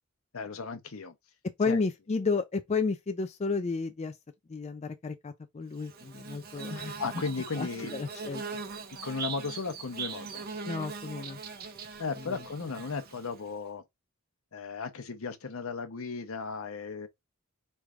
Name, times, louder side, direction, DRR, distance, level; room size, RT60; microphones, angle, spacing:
voice 1, 0.3-1.1 1.7-1.8 7.0-7.9 9.0-10.4 12.0-13.8 14.5-17.1, left 4 dB, 70° left, 0.8 m, -35 dB
voice 2, 1.6-4.2 4.5-7.2 7.6-8.4 10.6-11.4 12.2-12.3, left 4 dB, 30° left, 0.4 m, -32 dB
Bird / Buzz, 5.8-13.5, right 5 dB, 45° right, 0.8 m, -41 dB
4.5 x 3.2 x 2.4 m
head